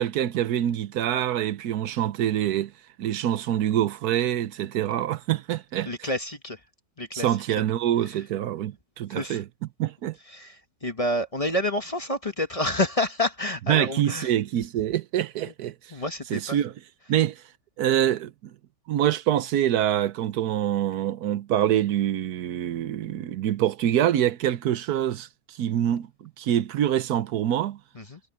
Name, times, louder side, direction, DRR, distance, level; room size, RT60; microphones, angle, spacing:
voice 1, 0.0-2.7 3.0-5.9 7.1-9.4 9.8-10.2 13.7-15.9 16.3-16.7 17.1-17.4 17.8-18.5 18.9-27.8, right 11 dB, 80° right, 1.3 m, -25 dB
voice 2, 5.8-6.6 7.0-7.6 8.0-8.2 9.1-9.4 10.3-14.3 15.9-16.6 27.9-28.2, left 1 dB, 25° left, 1.1 m, -29 dB
omnidirectional pair, 1.6 m